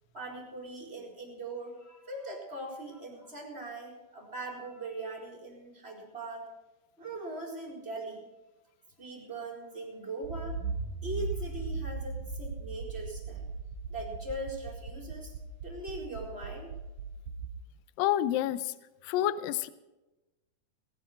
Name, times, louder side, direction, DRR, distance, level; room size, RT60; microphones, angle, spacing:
voice 1, 0.1-6.4 7.0-8.2 9.0-10.6 11.0-13.4 13.9-15.3 15.6-16.7, right 2 dB, 15° right, 0 dB, 4.1 m, -40 dB
Accelerating revving vroom, 10.2-17.5, right 4 dB, 60° right, 2.9 m, -38 dB
voice 2, 18.0-18.7 19.0-19.7, left 12 dB, 85° left, 14 dB, 2.0 m, -28 dB
19.5 x 11.0 x 5.3 m, 1.0 s
omnidirectional pair, 4.9 m